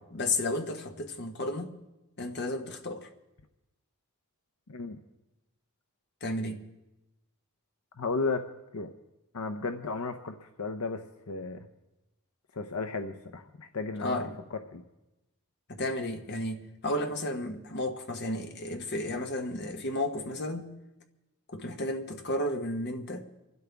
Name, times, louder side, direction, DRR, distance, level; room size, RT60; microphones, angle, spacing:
voice 1, 0.1-1.7 2.2-3.1 6.2-6.7 14.0-14.4 15.8-20.7 21.5-23.3, left 1 dB, 50° left, 1.3 m, -33 dB
voice 2, 8.0-8.5 8.7-8.9 9.3-11.7 12.5-14.8, left 3 dB, 75° left, 0.8 m, -34 dB
28.5 x 12.0 x 3.5 m
head